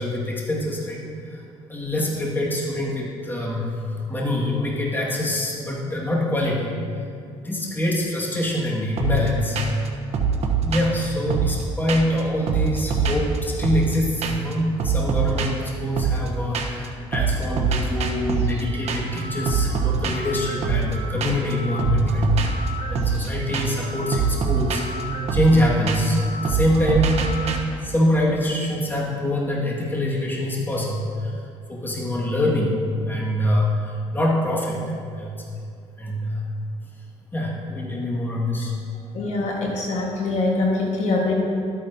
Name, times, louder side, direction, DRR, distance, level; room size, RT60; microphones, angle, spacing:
voice 1, 0.0-1.4 1.7-6.7 7.3-9.6 10.6-24.8 25.3-27.2 27.8-31.4 31.7-34.8 35.2-35.3 36.0-36.4 37.3-38.7, left 1 dB, 15° left, -4 dB, 2.1 m, -24 dB
sound 1, 9.0-9.3 9.6-9.9 10.1-12.2 12.5-14.0 14.2-14.5 14.8-16.9 17.1-27.6, right 5 dB, 55° right, 1.1 m, -25 dB
voice 2, 39.1-41.3, left 2 dB, 60° left, -2 dB, 1.7 m, -23 dB
13.0 x 9.0 x 2.9 m, 2.4 s
cardioid pair, 90°, 13 cm